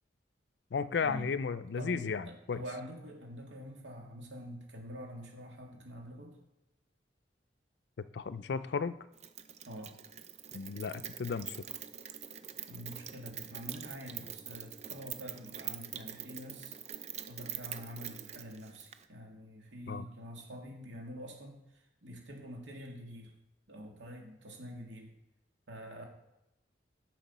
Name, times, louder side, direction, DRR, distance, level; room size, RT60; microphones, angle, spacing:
voice 1, 0.7-2.6 8.1-8.9 10.5-11.6 19.9-20.1, left 5 dB, 65° left, 15 dB, 0.4 m, -34 dB
voice 2, 1.8-6.4 9.7-9.9 12.7-23.3 23.7-25.1 25.7-26.0, equal, 80° right, 0 dB, 2.1 m, -46 dB
Rain, 9.2-19.1, right 10 dB, 35° right, 0.5 m, -44 dB
9.8 x 6.0 x 4.2 m, 0.92 s
head